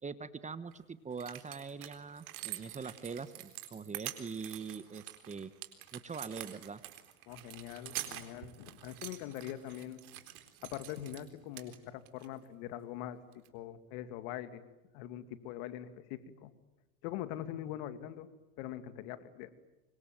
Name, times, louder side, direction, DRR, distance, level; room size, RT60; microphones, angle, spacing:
voice 1, 0.0-5.5 5.9-6.8, right 5 dB, 15° right, 14 dB, 1.2 m, -43 dB
sound 1, 0.7-0.8 1.1-11.3 11.6-12.3 13.3-13.5, right 15 dB, 70° right, 4.1 m, -46 dB
voice 2, 7.3-10.0 10.6-13.2 13.5-14.6 14.9-16.5 17.0-18.3 18.6-19.5, left 12 dB, 60° left, 11 dB, 2.6 m, -43 dB
26.0 x 24.5 x 9.2 m, 1.0 s
supercardioid pair, 110°, 45 cm